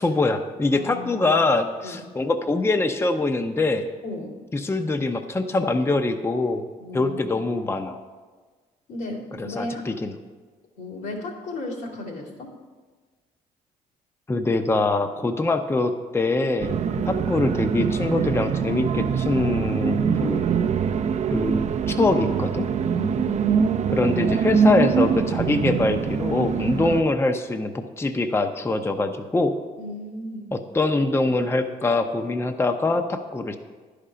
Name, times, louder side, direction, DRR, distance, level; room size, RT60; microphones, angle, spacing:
voice 1, 0.0-3.9 4.5-6.6 6.9-8.0 9.4-10.1 14.3-16.8 17.1-20.4 21.3-21.6 21.9-22.7 23.9-29.5 30.5-33.6, left 2 dB, 15° left, 7 dB, 0.6 m, -23 dB
voice 2, 0.7-1.3 1.8-2.1 4.0-4.4 6.8-7.4 8.9-9.8 10.8-12.5 16.9-17.2 22.9-23.6 29.8-30.5, left 2 dB, 80° left, -4 dB, 2.2 m, -35 dB
sound 1, 16.6-27.0, right 6 dB, 40° right, 0.5 m, -23 dB
10.5 x 5.0 x 5.6 m, 1.4 s
supercardioid pair, 70°, 17 cm